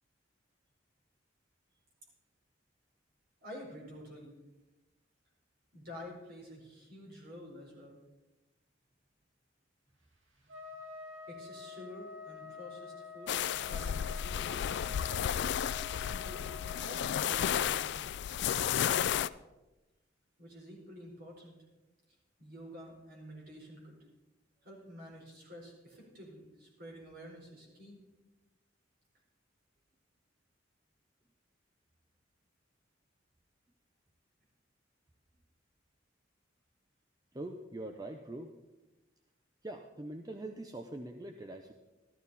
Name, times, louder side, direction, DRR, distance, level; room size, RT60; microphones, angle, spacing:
voice 1, 3.4-4.4 5.7-8.0 11.3-14.7 16.1-16.4 16.8-18.1 20.4-21.6 22.4-24.0 24.6-28.0, left 1 dB, 50° right, -2 dB, 4.6 m, -49 dB
Trumpet, 10.5-17.8, left 4 dB, 75° right, 2.4 m, -48 dB
sound 1, 13.3-19.3, left 9 dB, 60° left, 0.3 m, -32 dB
voice 2, 37.3-38.5 39.6-41.7, right 1 dB, 20° right, 5 dB, 0.6 m, -43 dB
14.0 x 13.0 x 4.2 m, 1.1 s
head